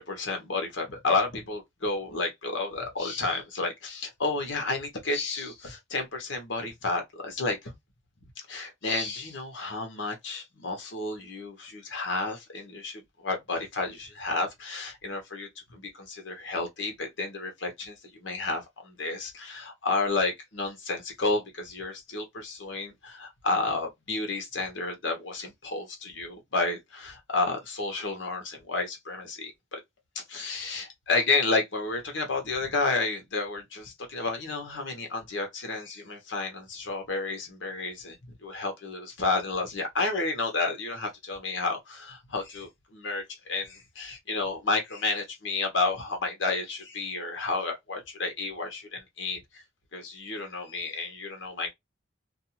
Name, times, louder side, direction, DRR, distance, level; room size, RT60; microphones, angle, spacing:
voice 1, 0.0-7.7 8.5-29.8 30.1-38.2 38.4-43.2 43.5-49.6 49.9-51.7, left 3 dB, 80° left, 1.0 m, -31 dB
2.5 x 2.4 x 2.8 m
head